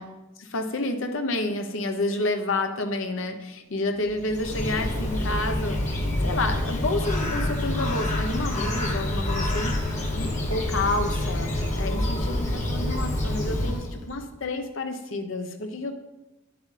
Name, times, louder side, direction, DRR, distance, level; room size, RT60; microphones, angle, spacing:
voice 1, 0.4-5.8 6.2-9.8 10.2-15.9, left 2 dB, 75° left, 6 dB, 0.9 m, -29 dB
Bird, 4.1-14.1, left 1 dB, 35° left, 1.2 m, -27 dB
9.7 x 7.9 x 3.3 m, 1.0 s
head